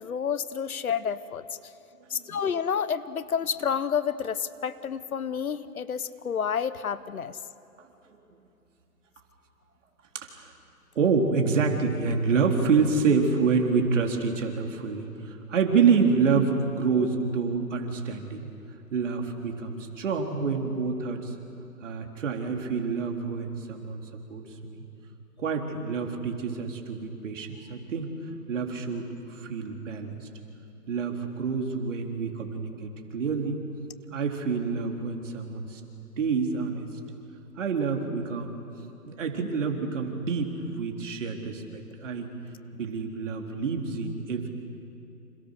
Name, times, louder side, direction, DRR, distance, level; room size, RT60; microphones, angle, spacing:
voice 1, 0.0-1.4 2.1-7.4, left 7 dB, 65° left, 15 dB, 1.2 m, -29 dB
voice 2, 2.0-2.4 8.1-8.2 10.1-10.5 11.0-18.5 18.9-21.3 21.8-24.8 25.4-28.1 28.5-30.2 30.9-33.6 34.1-35.8 36.2-36.9 37.6-38.6 39.1-42.3 42.7-44.5, right 5 dB, 55° right, 3 dB, 3.8 m, -27 dB
30.0 x 27.5 x 6.6 m, 2.8 s
hypercardioid pair, 145°, 45 cm